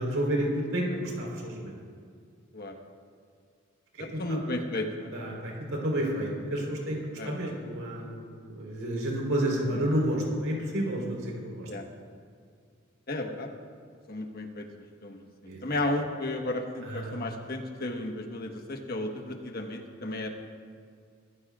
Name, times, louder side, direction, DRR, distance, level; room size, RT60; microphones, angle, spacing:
voice 1, 0.0-1.7 4.0-4.4 5.1-11.7 15.5-15.6 16.8-17.1, right 1 dB, 80° right, -1 dB, 3.9 m, -30 dB
voice 2, 4.0-5.1 7.2-7.3 9.7-9.8 11.7-11.8 13.1-13.5 14.1-14.6 15.0-15.2 15.6-20.3, left 2 dB, 50° left, 3 dB, 1.3 m, -33 dB
23.5 x 15.0 x 2.4 m, 2.2 s
head